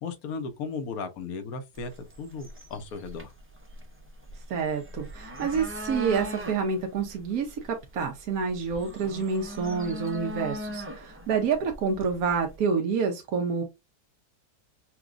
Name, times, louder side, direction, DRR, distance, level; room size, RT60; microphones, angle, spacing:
voice 1, 0.0-1.9 2.2-3.3, left 4 dB, 70° left, 1.2 m, -35 dB
sound 1, 1.7-12.6, left 1 dB, 20° right, 0.3 m, -40 dB
voice 2, 4.5-13.6, right 5 dB, 70° right, 1.2 m, -28 dB
5.9 x 2.3 x 2.5 m
omnidirectional pair, 1.7 m